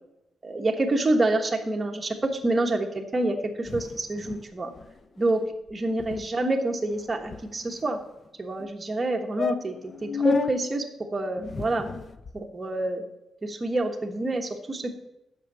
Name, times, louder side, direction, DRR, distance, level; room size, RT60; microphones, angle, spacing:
voice 1, 0.4-4.7 5.2-5.4 5.7-8.0 8.4-11.9 12.3-13.0 13.4-14.9, right 2 dB, 25° right, 3 dB, 1.2 m, -27 dB
sound 1, 3.6-4.5 4.8-4.9 5.2-5.4 5.7-5.8 6.0-6.3 6.9-7.9 8.6-8.7 9.0-9.1 9.4-10.5 11.4-12.4, left 5 dB, 35° left, 0.5 m, -32 dB
8.3 x 6.3 x 6.8 m, 0.90 s
cardioid pair, 120°, 0 cm